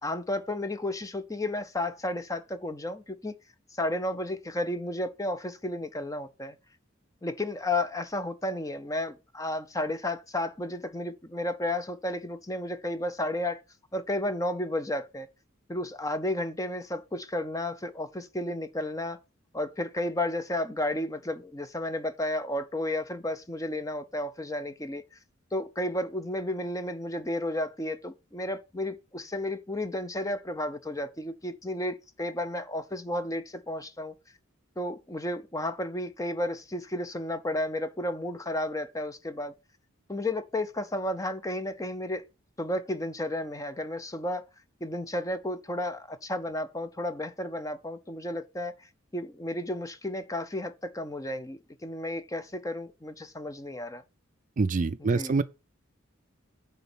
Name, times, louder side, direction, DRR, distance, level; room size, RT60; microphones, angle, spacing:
voice 1, 0.0-3.3 3.7-6.6 7.2-13.6 13.9-15.3 15.7-19.2 19.5-25.2 25.5-34.1 34.8-39.5 40.1-42.2 42.6-44.4 44.8-48.9 49.1-54.0 55.0-55.3, left 1 dB, 15° left, 0.6 m, -32 dB
voice 2, 54.6-55.4, right 4 dB, 40° right, 0.4 m, -25 dB
9.5 x 4.0 x 7.1 m
head